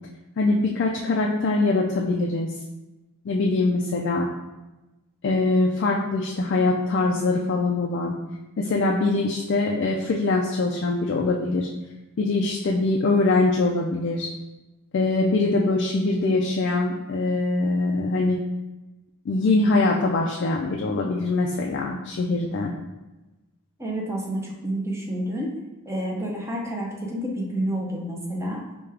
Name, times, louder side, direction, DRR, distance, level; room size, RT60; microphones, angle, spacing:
voice 1, 0.4-2.5 3.2-4.3 5.2-8.2 8.6-11.7 12.2-14.3 14.9-18.4 19.3-22.7, left 2 dB, 55° left, -1 dB, 0.3 m, -23 dB
voice 2, 23.8-25.5 25.9-28.6, right 1 dB, 15° right, -2 dB, 0.5 m, -29 dB
4.8 x 2.3 x 3.3 m, 1.1 s
head